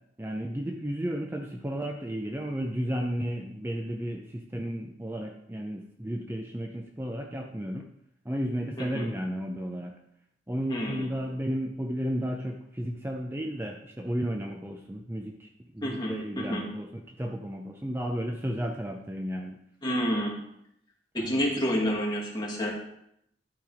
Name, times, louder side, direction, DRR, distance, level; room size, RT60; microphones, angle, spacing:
voice 1, 0.2-7.8 8.2-9.9 10.5-15.5 15.7-19.6 21.2-21.5, equal, 10° right, 2 dB, 0.6 m, -33 dB
voice 2, 10.7-11.1 15.8-16.7 19.8-20.4 21.1-22.7, equal, 25° left, -3 dB, 2.1 m, -29 dB
12.0 x 5.3 x 5.0 m, 0.75 s
head